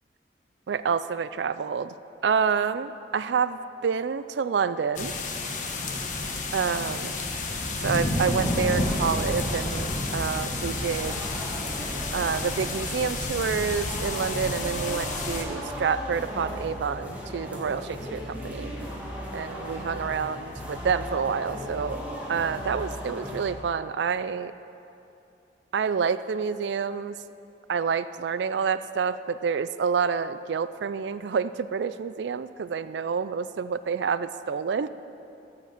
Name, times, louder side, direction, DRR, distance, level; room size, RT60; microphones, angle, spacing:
voice 1, 0.7-1.9 2.2-5.1 6.5-7.1 7.8-11.2 12.1-18.7 19.3-22.0 22.3-24.5 25.7-27.2 27.7-34.9, right 6 dB, 80° right, 14 dB, 0.4 m, -28 dB
sound 1, 5.0-15.4, left 2 dB, 45° left, 1.3 m, -30 dB
sound 2, 8.1-23.5, equal, 10° right, 1.7 m, -36 dB
14.0 x 7.8 x 6.5 m, 2.7 s
head